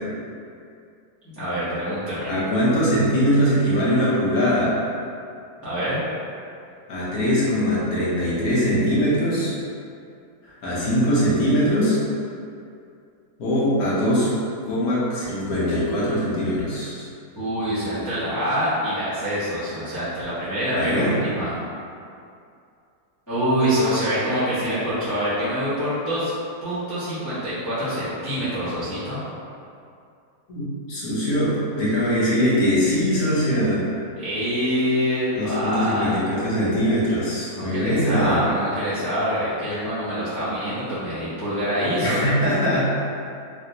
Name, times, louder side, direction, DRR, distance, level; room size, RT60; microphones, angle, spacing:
voice 1, 1.3-2.3 5.6-6.0 17.4-21.5 23.3-26.3 26.6-29.2 34.2-36.1 37.5-42.2, equal, 15° left, -14 dB, 0.7 m, -25 dB
voice 2, 2.3-4.7 6.9-9.5 10.4-12.0 13.4-14.3 14.7-17.0 20.7-21.1 30.5-33.8 35.3-38.4 42.0-42.8, equal, 70° left, -8 dB, 1.3 m, -22 dB
3.4 x 2.5 x 2.8 m, 2.5 s
omnidirectional pair, 1.6 m